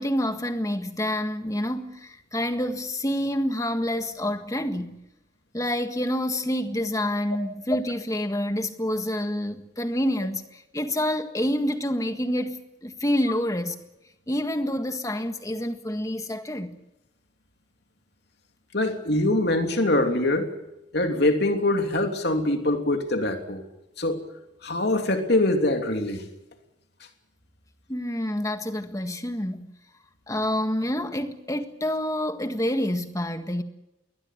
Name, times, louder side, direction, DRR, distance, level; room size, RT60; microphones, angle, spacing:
voice 1, 0.0-5.0 5.5-13.8 14.3-16.7 27.9-29.7 30.3-33.6, left 1 dB, 15° left, 1.7 m, -27 dB
voice 2, 18.7-20.5 20.9-23.6 24.0-24.2 24.6-26.3, left 1 dB, 55° left, 3.1 m, -23 dB
22.0 x 19.0 x 8.5 m
head